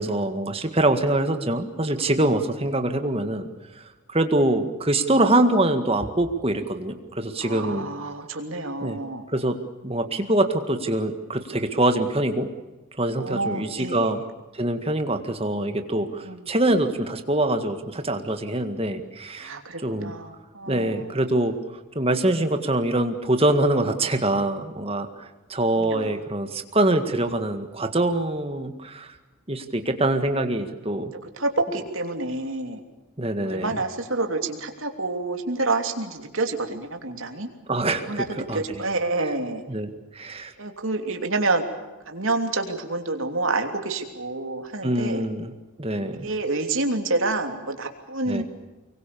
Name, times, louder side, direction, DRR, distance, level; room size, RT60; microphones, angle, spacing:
voice 1, 0.0-3.5 3.8-7.9 8.8-9.0 9.3-9.6 9.8-12.5 13.0-14.2 14.5-20.1 20.7-21.6 22.0-29.1 29.5-31.1 33.2-33.8 37.7-38.8 39.2-39.3 39.7-40.5 44.8-45.5 45.8-46.3 48.3-48.4, right 1 dB, 25° right, 7 dB, 1.9 m, -24 dB
voice 2, 7.4-9.2 13.2-14.1 16.1-16.5 19.4-21.1 25.8-26.1 31.4-32.8 33.4-37.5 38.0-39.6 40.6-41.6 42.1-45.2 46.2-48.4, right 2 dB, 65° right, 5 dB, 3.1 m, -28 dB
25.0 x 23.0 x 7.0 m, 1.1 s
head